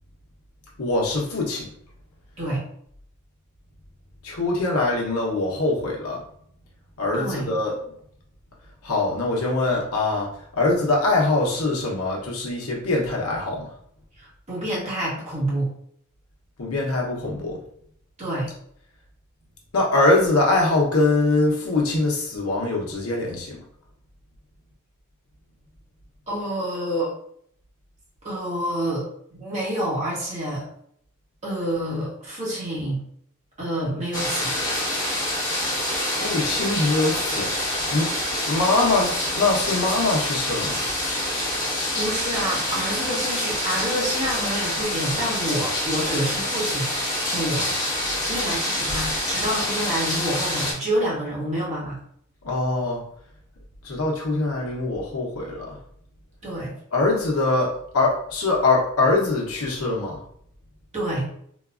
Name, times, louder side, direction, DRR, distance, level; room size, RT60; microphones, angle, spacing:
voice 1, 0.8-1.7 4.2-6.2 7.0-7.7 8.8-10.3 10.6-13.7 16.6-17.6 19.7-23.5 36.1-37.5 37.9-38.1 38.5-40.8 52.4-53.0 53.8-55.8 56.9-60.2, left 2 dB, 70° left, -2 dB, 0.9 m, -23 dB
voice 2, 7.1-7.5 14.2-15.7 18.2-18.5 26.3-27.1 28.2-29.0 29.3-30.7 31.4-33.0 33.6-34.5 41.9-47.7 48.3-52.0 56.4-56.7 60.9-61.3, right 1 dB, 35° right, -6 dB, 1.3 m, -28 dB
sound 1, 34.1-50.7, left 1 dB, 20° left, 1.3 m, -26 dB
3.9 x 2.3 x 2.4 m, 0.66 s
head